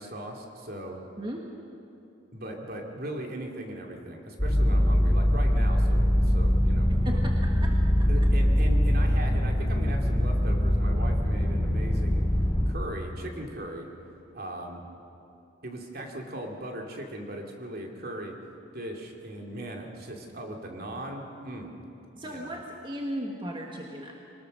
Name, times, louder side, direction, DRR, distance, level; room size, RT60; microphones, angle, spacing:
voice 1, 0.0-1.0 2.3-7.2 8.1-12.2 12.7-13.9 14.3-14.8 15.6-18.4 18.7-21.7 22.2-22.5, right 1 dB, 55° right, 1 dB, 2.6 m, -38 dB
sound 1, 4.4-12.7, equal, 20° left, 4.0 m, -23 dB
voice 2, 6.9-7.7 8.0-8.1 22.1-24.1, equal, 25° right, 0 dB, 1.4 m, -36 dB
23.5 x 19.5 x 6.5 m, 2.9 s
head